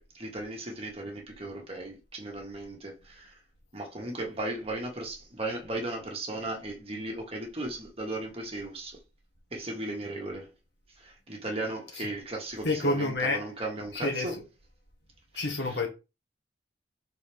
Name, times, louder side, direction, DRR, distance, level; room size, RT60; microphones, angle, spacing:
voice 1, 0.0-3.4 3.7-9.0 9.5-10.5 10.9-14.3 15.3-15.8, right 2 dB, 30° right, 1.8 m, -36 dB
voice 2, 12.6-13.5 13.9-14.4 15.3-15.9, left 2 dB, 65° left, 1.4 m, -29 dB
6.2 x 4.2 x 3.5 m
head